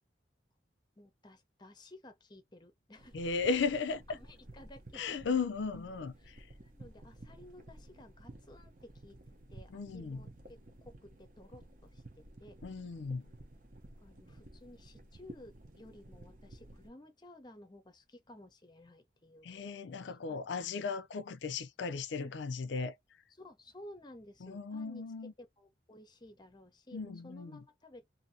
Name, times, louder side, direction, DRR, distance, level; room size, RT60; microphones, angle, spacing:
voice 1, 1.0-3.2 4.1-5.1 6.2-6.3 6.6-9.2 9.5-12.6 14.0-20.8 22.2-22.4 23.4-25.1 25.4-28.1, left 1 dB, 25° left, 0.7 m, -55 dB
sound 1, 3.0-16.9, right 1 dB, 45° right, 0.7 m, -54 dB
voice 2, 3.1-4.2 4.9-6.5 9.7-10.2 12.6-13.3 19.4-23.0 24.4-25.3 26.9-27.6, left 5 dB, 75° left, 0.4 m, -36 dB
2.7 x 2.6 x 2.6 m
head